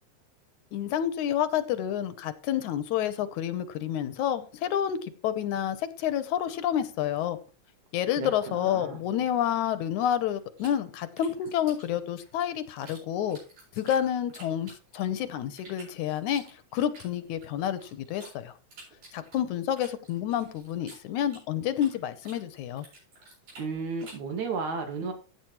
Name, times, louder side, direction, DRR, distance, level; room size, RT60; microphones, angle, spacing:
voice 1, 0.7-7.4 7.9-13.4 13.8-16.4 16.7-18.5 19.1-22.9, left 10 dB, 80° left, 12 dB, 2.3 m, -29 dB
voice 2, 8.2-9.0 23.6-25.1, right 4 dB, 70° right, 4 dB, 3.5 m, -33 dB
sound 1, 10.6-13.0 13.3-15.2 15.6-18.3 18.7-22.0 22.2-24.3, right 2 dB, 85° right, 9.1 m, -51 dB
15.0 x 9.0 x 3.1 m, 0.34 s
omnidirectional pair, 3.5 m